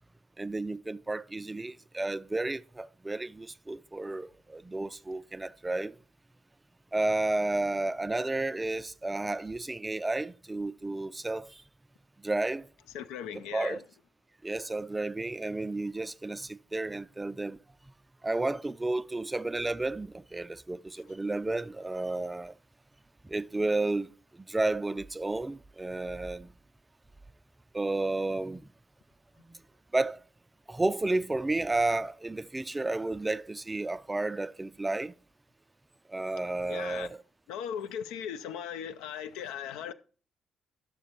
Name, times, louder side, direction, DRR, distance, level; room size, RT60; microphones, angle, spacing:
voice 1, 0.4-5.9 6.9-11.6 12.2-12.7 13.5-13.8 14.4-17.6 18.2-22.5 23.3-26.5 27.7-28.7 29.5-29.6 29.9-30.2 30.7-35.1 36.1-37.1, right 2 dB, 20° right, 0.3 m, -32 dB
voice 2, 12.9-13.8 36.7-37.2 37.5-39.9, left 9 dB, 75° left, 0.3 m, -38 dB
11.5 x 6.7 x 2.8 m
hypercardioid pair, 45°, 0 cm